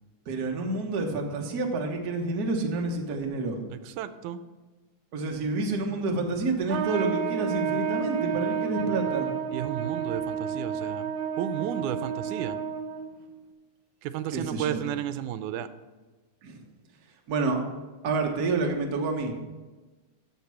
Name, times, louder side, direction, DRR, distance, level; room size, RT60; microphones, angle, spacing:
voice 1, 0.3-3.6 5.1-9.3 14.3-14.8 16.4-16.6 17.3-17.6 18.0-19.3, right 3 dB, 45° right, 1 dB, 1.2 m, -28 dB
voice 2, 3.7-4.4 9.5-12.6 14.0-15.7, right 10 dB, 90° right, 12 dB, 2.1 m, -33 dB
Trumpet, 6.7-13.2, right 7 dB, 70° right, 2.0 m, -30 dB
14.0 x 6.0 x 5.8 m, 1.3 s
omnidirectional pair, 3.5 m